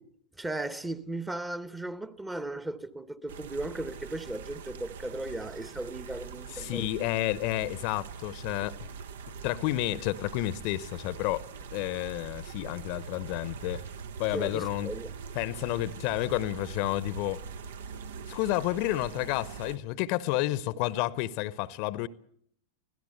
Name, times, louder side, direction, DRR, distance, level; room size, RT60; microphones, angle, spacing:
voice 1, 0.4-7.1 14.3-15.1, right 2 dB, 10° right, 1.1 m, -36 dB
sound 1, 3.3-19.8, right 6 dB, 60° right, 0.9 m, -43 dB
voice 2, 6.5-8.8 9.4-11.5 11.7-13.9 14.2-14.9 15.3-17.4 18.3-22.1, left 16 dB, 45° left, 0.9 m, -30 dB
25.0 x 17.0 x 7.8 m
figure-of-eight pair, 90°, 0 cm